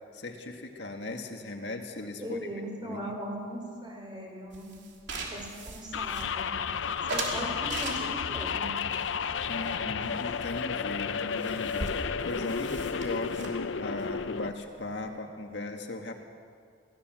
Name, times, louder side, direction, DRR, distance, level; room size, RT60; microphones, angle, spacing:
voice 1, 0.1-2.4 2.8-3.1 7.4-7.5 9.5-16.1, left 2 dB, 65° left, 3 dB, 1.9 m, -38 dB
voice 2, 2.2-4.7 5.3-6.6 7.1-8.7, equal, 25° right, 0 dB, 4.7 m, -39 dB
sound 1, 4.5-6.6 7.1-8.4 9.0-10.2 10.5-10.6 10.9-11.0 11.2-15.1, right 3 dB, 70° right, 3.2 m, -39 dB
sound 2, 5.9-14.5, left 6 dB, 90° left, 0.6 m, -32 dB
22.5 x 16.0 x 7.7 m, 2.2 s
head